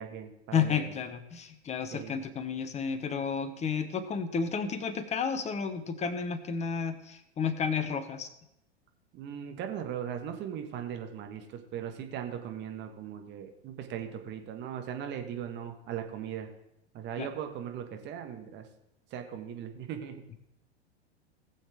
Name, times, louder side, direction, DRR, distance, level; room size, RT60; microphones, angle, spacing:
voice 1, 0.0-0.9 1.9-2.2 9.1-16.5 16.9-18.7 19.1-20.4, right 9 dB, 35° right, 5 dB, 1.6 m, -39 dB
voice 2, 0.5-8.3 17.2-17.3, left 6 dB, 20° left, 11 dB, 1.0 m, -32 dB
18.5 x 7.2 x 3.5 m, 0.82 s
figure-of-eight pair, 95°, 33 cm